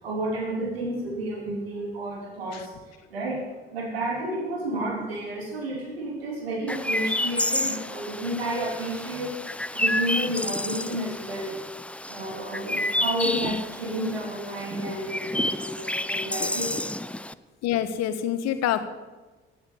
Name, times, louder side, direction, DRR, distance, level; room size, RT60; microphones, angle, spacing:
voice 1, 0.0-2.7 3.1-3.5 3.7-11.5 12.1-16.9, right 1 dB, 80° right, 0 dB, 3.6 m, -31 dB
Chirp tweet, 6.7-17.3, left 1 dB, 5° left, 0.6 m, -30 dB
voice 2, 13.2-13.6 16.4-16.5 17.6-18.9, left 10 dB, 60° left, 10 dB, 1.4 m, -27 dB
16.0 x 9.6 x 8.2 m, 1.2 s
figure-of-eight pair, 50°, 30 cm